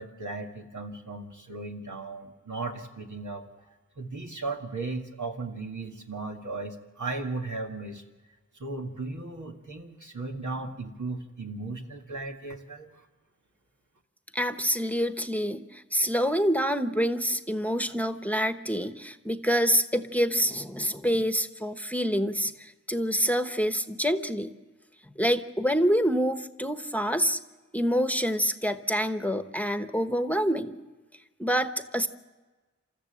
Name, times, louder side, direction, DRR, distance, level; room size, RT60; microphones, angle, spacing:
voice 1, 0.0-8.0 8.5-13.1, right 3 dB, 90° right, 1 dB, 1.9 m, -36 dB
voice 2, 14.3-24.5 25.2-27.4 27.7-30.8 31.4-32.1, equal, 5° left, 9 dB, 1.0 m, -27 dB
28.0 x 13.5 x 7.7 m, 1.3 s
wide cardioid pair, 45°, 29 cm